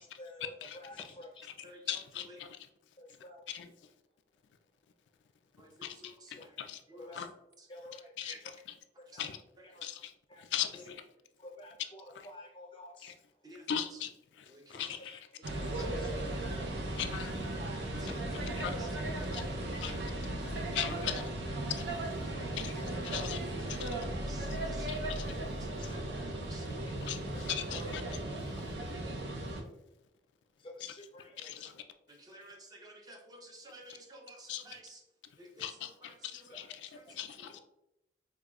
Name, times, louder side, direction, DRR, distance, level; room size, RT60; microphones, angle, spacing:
voice 1, 0.0-0.5 0.8-1.3 3.0-3.4 7.0-7.2 7.7-8.1 8.4-8.5 9.1-9.2 9.7-9.8 10.3-10.4 11.4-13.1 14.7-15.2 16.0-16.1 16.7-17.0 19.2-19.3 19.9-20.0 22.3-22.5 22.8-23.1 23.8-24.0 25.8-25.9 26.5-26.9 27.3-27.4 30.6-31.7, left 1 dB, 30° left, 2 dB, 0.5 m, -51 dB
voice 2, 0.6-1.0 1.4-2.7 3.5-3.7 5.8-6.8 7.1-7.3 7.9-8.4 8.7-8.8 9.2-9.4 9.8-11.0 12.1-12.3 13.0-13.2 13.7-15.3 15.7-15.9 17.0-17.5 18.1-18.7 19.2-19.4 19.8-20.0 20.4-21.3 21.7-21.9 22.6-23.4 23.7-23.9 24.5-25.4 27.0-28.7 30.8-31.1 31.4-31.8 33.9-34.0 34.5-34.8 35.6-37.6, left 10 dB, 90° left, 8 dB, 0.3 m, -40 dB
voice 3, 5.6-6.5 6.9-7.2 8.2-8.4 9.1-9.2 13.4-13.7 14.5-14.9 15.5-15.9 17.8-19.8 20.5-20.7 23.8-24.0 24.3-25.0 25.6-26.0 26.3-26.7 32.1-35.0 35.4-35.6 36.0-36.5 36.9-37.2, right 1 dB, 20° right, 1 dB, 0.5 m, -53 dB
sound 1, 15.4-29.6, right 1 dB, 75° right, 0.6 m, -36 dB
4.8 x 2.3 x 2.3 m, 0.86 s
head